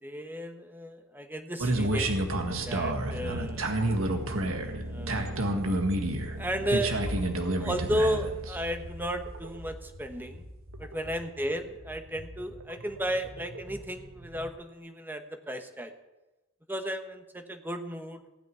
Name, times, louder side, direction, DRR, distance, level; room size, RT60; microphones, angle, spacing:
voice 1, 0.0-2.3 2.6-3.7 4.9-5.5 6.4-7.0 7.6-10.4 10.8-15.9 16.7-18.2, equal, 10° right, 7 dB, 1.0 m, -34 dB
sound 1, 1.6-14.5, right 1 dB, 85° right, 1.6 m, -31 dB
16.0 x 6.1 x 9.3 m, 1.1 s
head